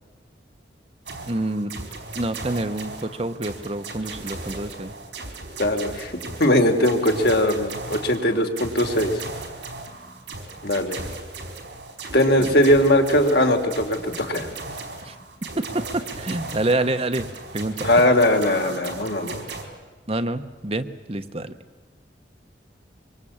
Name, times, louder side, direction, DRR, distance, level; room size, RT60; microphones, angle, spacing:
sound 1, 1.1-19.6, right 3 dB, 80° right, 4.6 m, -36 dB
voice 1, 1.3-1.7 2.1-4.9 12.4-12.5 15.0-15.1 15.6-17.3 17.5-17.9 20.1-21.5, right 2 dB, 35° right, 9 dB, 1.1 m, -27 dB
voice 2, 5.6-6.1 6.4-9.2 10.6-11.0 12.1-14.5 17.8-19.4, left 1 dB, 65° left, 4 dB, 3.5 m, -20 dB
24.5 x 24.0 x 8.8 m, 1.2 s
head